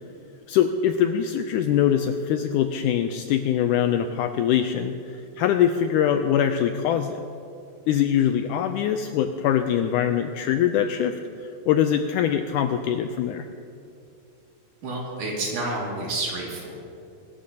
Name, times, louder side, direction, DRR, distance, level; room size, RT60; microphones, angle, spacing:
voice 1, 0.5-7.3 7.9-11.2 11.7-13.5, left 9 dB, 85° left, 7 dB, 1.8 m, -23 dB
voice 2, 14.8-16.8, right 2 dB, 65° right, -3 dB, 3.7 m, -29 dB
24.5 x 12.5 x 2.8 m, 2.5 s
omnidirectional pair, 4.0 m